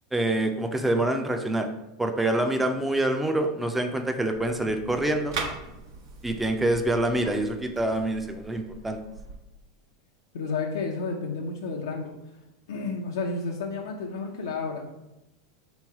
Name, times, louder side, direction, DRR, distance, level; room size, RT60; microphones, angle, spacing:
voice 1, 0.1-1.7 2.0-5.4 6.2-9.0, right 1 dB, 5° right, 5 dB, 0.4 m, -26 dB
sound 1, 4.3-9.4, right 4 dB, 85° right, 1.0 m, -40 dB
voice 2, 10.3-12.1 12.7-14.9, left 4 dB, 85° left, -1 dB, 0.6 m, -31 dB
3.7 x 3.1 x 4.7 m, 0.95 s
hypercardioid pair, 115°, 2 cm